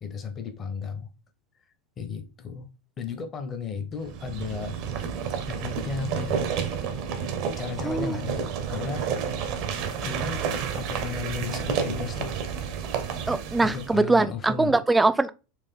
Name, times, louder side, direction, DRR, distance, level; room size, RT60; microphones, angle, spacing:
voice 1, 0.0-1.1 2.0-2.7 3.0-4.8 5.5-6.5 7.6-9.1 10.0-10.5 10.8-12.3 13.6-14.8, left 6 dB, 25° left, 0.8 m, -34 dB
sound 1, 4.0-14.0, right 7 dB, 45° right, 0.6 m, -30 dB
voice 2, 7.8-8.2 13.3-15.3, right 3 dB, 10° right, 0.3 m, -22 dB
4.5 x 2.5 x 3.6 m
figure-of-eight pair, 85°, 0 cm